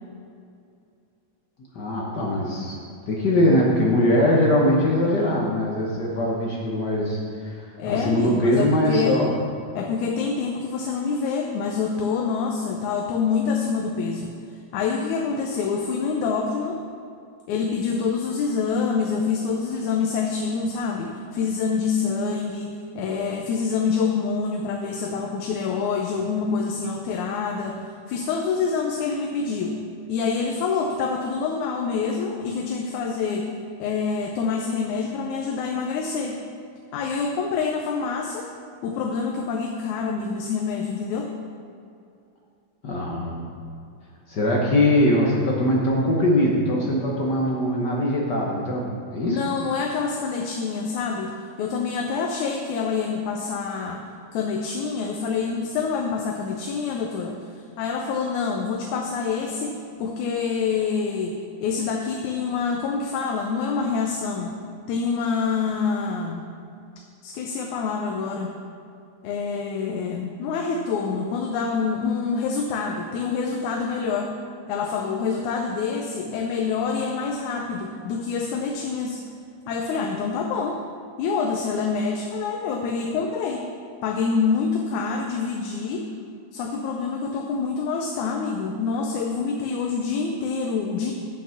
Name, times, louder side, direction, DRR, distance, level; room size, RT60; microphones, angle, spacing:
voice 1, 1.7-2.8 3.1-7.6 7.8-9.4 42.8-43.4 44.3-48.8 49.1-49.4, left 1 dB, 60° left, -3 dB, 1.1 m, -21 dB
voice 2, 7.8-9.2 9.8-14.3 14.7-16.8 17.5-22.7 23.0-27.8 28.1-29.8 30.1-33.5 33.8-36.4 36.9-38.5 38.8-41.3 49.2-54.0 54.3-57.4 57.8-64.6 64.9-66.5 67.2-68.5 69.2-74.3 74.7-79.2 79.7-80.8 81.2-83.7 84.0-86.1 86.5-91.1, left 5 dB, 85° left, 1 dB, 2.1 m, -26 dB
8.4 x 7.8 x 5.7 m, 2.5 s
omnidirectional pair, 3.4 m